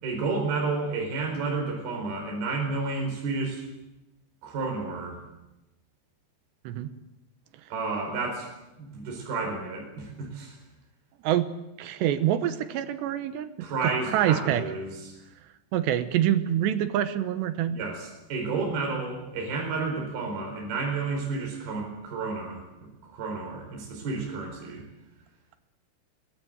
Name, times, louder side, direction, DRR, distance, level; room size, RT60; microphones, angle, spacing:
voice 1, 0.0-3.6 4.4-5.2 7.7-8.5 8.8-10.5 13.6-15.0 17.7-22.6 23.1-24.8, right 3 dB, 60° right, 0 dB, 6.6 m, -31 dB
voice 2, 11.8-14.6 15.7-17.8, right 11 dB, 80° right, 11 dB, 3.1 m, -26 dB
25.0 x 20.0 x 8.0 m, 0.97 s
omnidirectional pair, 5.1 m